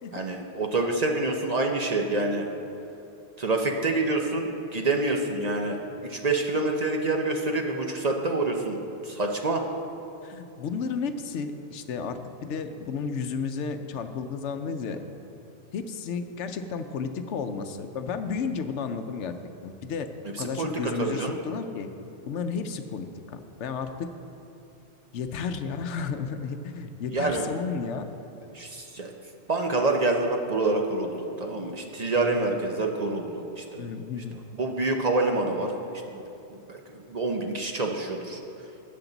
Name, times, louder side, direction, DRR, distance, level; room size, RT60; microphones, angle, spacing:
voice 1, 0.1-2.5 3.4-5.8 6.1-9.6 20.4-21.4 27.1-27.5 28.5-29.1 29.5-33.9 34.6-35.7 36.1-36.2 36.7-38.4, right 2 dB, 40° right, 2 dB, 0.8 m, -27 dB
voice 2, 10.2-15.0 15.7-19.3 19.6-20.1 20.4-21.9 22.3-24.1 25.1-28.1 32.2-32.4 33.8-34.4, left 5 dB, 85° left, 8 dB, 1.0 m, -32 dB
13.0 x 8.6 x 4.0 m, 2.9 s
omnidirectional pair, 1.2 m